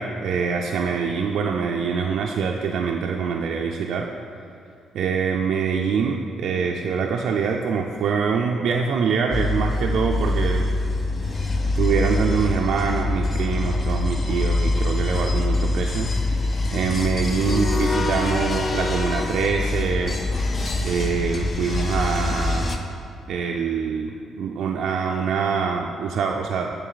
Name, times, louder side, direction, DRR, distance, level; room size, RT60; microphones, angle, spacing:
voice 1, 0.0-4.1 4.9-10.7 11.7-16.1 16.7-20.2 20.8-22.8 23.3-26.7, right 6 dB, 75° right, 1 dB, 0.3 m, -24 dB
sound 1, 9.3-22.8, left 2 dB, 35° left, 0.5 m, -24 dB
8.3 x 3.1 x 3.9 m, 2.6 s
cardioid pair, 90°, 0 cm